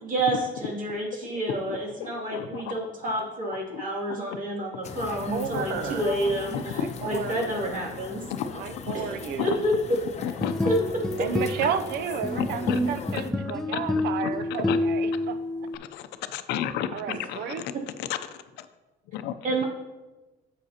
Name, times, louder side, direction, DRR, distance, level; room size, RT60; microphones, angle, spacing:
voice 1, 0.0-8.2 8.9-10.0 10.6-10.8 19.4-19.6, right 1 dB, 50° right, -2 dB, 2.5 m, -29 dB
voice 2, 1.6-2.7 3.7-3.8 5.5-5.6 6.5-6.9 7.2-7.3 8.3-8.5 8.9-9.0 9.4-9.5 10.2-10.5 11.6-11.7 12.3-12.8 13.7-13.8 14.7-14.8 15.9-17.7 18.0-18.1 18.6-18.7 19.1-19.3, left 10 dB, 85° left, 10 dB, 0.6 m, -32 dB
sound 1, 4.8-13.3, left 5 dB, 40° left, 0.7 m, -40 dB
voice 3, 5.0-6.0 6.7-7.6 8.5-9.5 11.2-15.4 16.9-17.6, right 8 dB, 75° right, 11 dB, 0.6 m, -32 dB
sound 2, 10.2-15.8, left 1 dB, 5° left, 0.6 m, -28 dB
10.0 x 7.3 x 2.8 m, 1.1 s
cardioid pair, 110°, 17 cm